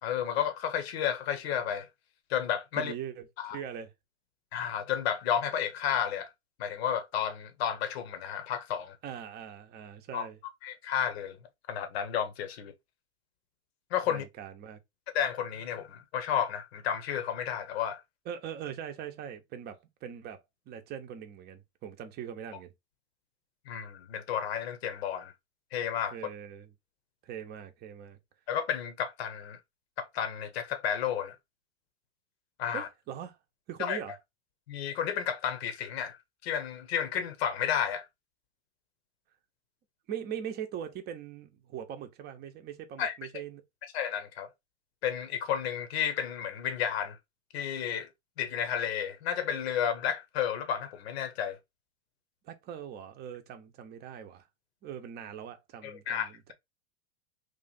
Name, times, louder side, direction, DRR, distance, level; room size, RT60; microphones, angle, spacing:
voice 1, 0.0-1.9 2.3-2.9 3.4-3.6 4.5-6.3 6.6-9.0 10.1-10.3 10.6-11.4 11.7-12.7 13.9-14.2 15.1-18.0 23.7-25.3 25.7-26.2 28.5-29.6 30.0-31.4 32.6-32.9 33.8-34.0 34.7-38.1 43.0-43.1 43.9-44.5 45.0-47.2 47.5-48.1 48.4-51.6 55.8-56.5, left 9 dB, 65° left, 1.0 m, -32 dB
voice 2, 2.8-3.9 9.0-10.4 14.1-14.8 18.3-20.4 20.7-22.7 26.1-26.7 27.2-28.2 32.7-33.4 33.7-34.1 40.1-43.6 52.4-54.4 54.8-56.5, right 9 dB, 30° right, 0.7 m, -41 dB
3.1 x 2.4 x 3.9 m
hypercardioid pair, 115°, 34 cm